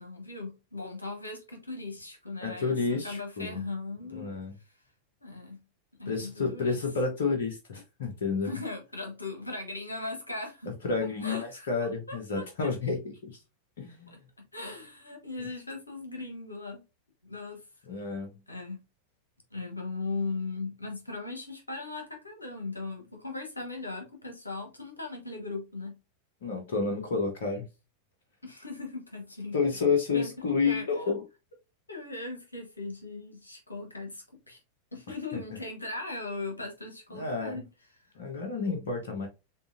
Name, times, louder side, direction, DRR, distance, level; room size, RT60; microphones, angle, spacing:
voice 1, 0.0-4.3 5.2-5.6 6.0-6.8 8.4-10.7 11.2-11.7 12.1-12.5 14.1-16.8 17.2-17.6 18.5-18.8 19.5-26.0 28.4-29.6 30.1-30.9 31.9-34.6 34.9-37.6, left 3 dB, 80° left, 1.2 m, -38 dB
voice 2, 2.4-3.6 4.1-4.5 6.1-8.5 10.8-13.0 13.8-14.1 17.9-18.3 26.4-27.6 29.5-31.2 37.1-37.6 38.1-39.3, left 4 dB, 60° left, 1.0 m, -30 dB
6.7 x 2.5 x 2.6 m
figure-of-eight pair, 90°, 0 cm